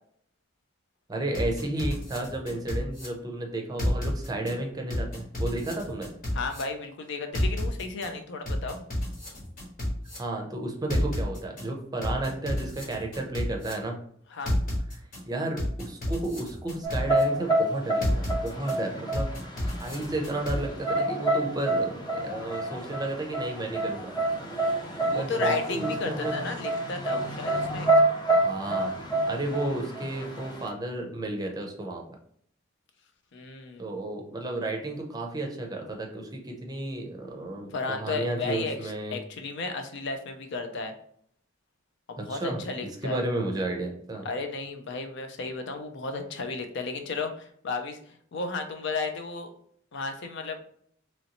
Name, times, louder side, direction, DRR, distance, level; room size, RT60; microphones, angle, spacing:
voice 1, 1.1-6.1 10.2-14.0 15.3-19.3 19.7-24.1 25.1-26.4 28.4-28.9 29.3-32.0 33.8-39.2 42.2-42.6 43.0-44.3, right 2 dB, 20° right, 1 dB, 0.6 m, -32 dB
sound 1, 1.3-3.1 3.8-4.5 4.9-6.6 7.3-8.1 8.4-10.2 10.9-11.6 12.0-13.7 14.4-15.2 15.6-17.2 18.0-18.7 19.1-20.6, left 1 dB, 45° left, 1.2 m, -30 dB
voice 2, 6.3-8.8 14.3-14.6 25.1-27.9 33.3-33.9 37.7-40.9 42.1-43.2 44.2-49.5 49.9-50.6, left 4 dB, 65° left, 6 dB, 0.5 m, -34 dB
sound 2, 16.8-30.7, right 1 dB, 25° left, 0.6 m, -28 dB
3.1 x 2.7 x 2.9 m, 0.63 s
head